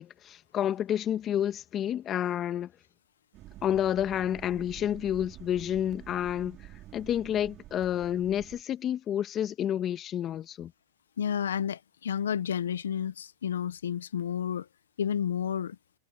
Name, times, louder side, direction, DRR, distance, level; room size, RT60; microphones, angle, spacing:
voice 1, 0.0-2.7 3.6-6.6 6.9-10.7, left 10 dB, 30° left, 1.9 m, -29 dB
sound 1, 3.3-8.6, right 15 dB, 40° right, 3.0 m, -48 dB
voice 2, 11.2-14.7 15.0-15.8, left 8 dB, 85° left, 0.9 m, -31 dB
hypercardioid pair, 120°, 0 cm